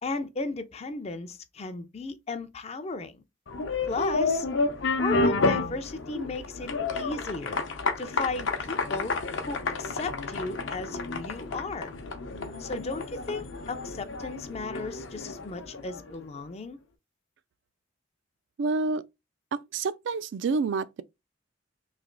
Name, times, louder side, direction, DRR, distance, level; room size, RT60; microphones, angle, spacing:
voice 1, 0.0-3.2 3.9-4.5 5.0-7.6 8.0-9.1 9.5-11.9 12.6-16.8, left 3 dB, 30° left, 0.4 m, -35 dB
sound 1, 3.5-16.2, left 3 dB, 70° left, 0.7 m, -30 dB
voice 2, 18.6-19.0 19.5-21.0, right 4 dB, 60° right, 0.3 m, -28 dB
3.2 x 2.9 x 3.7 m
head